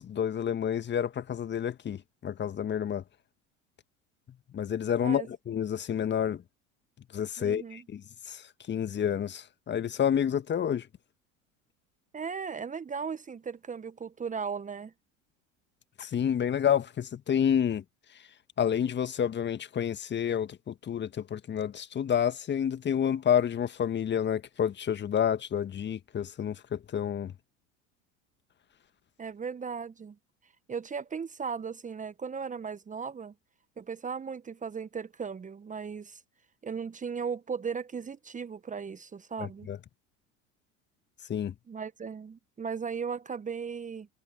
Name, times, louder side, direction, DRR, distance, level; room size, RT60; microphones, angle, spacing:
voice 1, 0.0-3.0 4.5-6.4 7.1-10.9 16.0-17.8 18.6-27.3 39.4-39.8 41.3-41.5, left 9 dB, 30° left, 1.9 m, -29 dB
voice 2, 7.4-7.8 12.1-14.9 29.2-30.2 30.7-33.3 33.8-36.2 36.6-39.7 41.7-44.1, right 6 dB, 20° right, 1.5 m, -37 dB
figure-of-eight pair, 75°, 39 cm